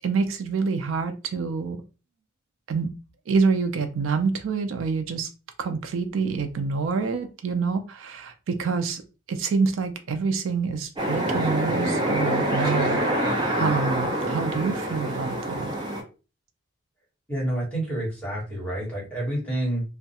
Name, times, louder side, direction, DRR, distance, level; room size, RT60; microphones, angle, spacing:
voice 1, 0.0-1.8 2.7-2.9 3.3-5.3 5.6-9.0 9.3-15.7, right 5 dB, 75° right, 6 dB, 0.4 m, -27 dB
sound 1, 11.0-16.0, right 1 dB, 20° right, 0.6 m, -25 dB
voice 2, 17.3-19.8, right 1 dB, 5° left, -6 dB, 1.2 m, -28 dB
2.3 x 2.1 x 2.8 m, 0.32 s
head